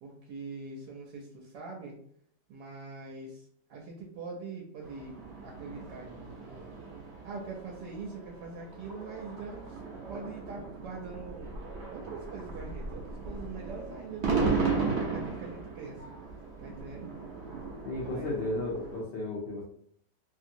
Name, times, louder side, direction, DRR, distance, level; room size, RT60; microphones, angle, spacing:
voice 1, 0.0-2.0 2.5-6.8 7.2-9.8 10.1-11.6 11.9-14.7 15.1-16.0 16.6-17.1 18.0-18.5, right 4 dB, 85° right, -1 dB, 1.3 m, -43 dB
sound 1, 4.8-19.0, right 4 dB, 55° right, 0.8 m, -36 dB
voice 2, 17.8-19.6, left 2 dB, 90° left, -4 dB, 0.5 m, -34 dB
3.0 x 2.7 x 2.5 m, 0.65 s
omnidirectional pair, 1.8 m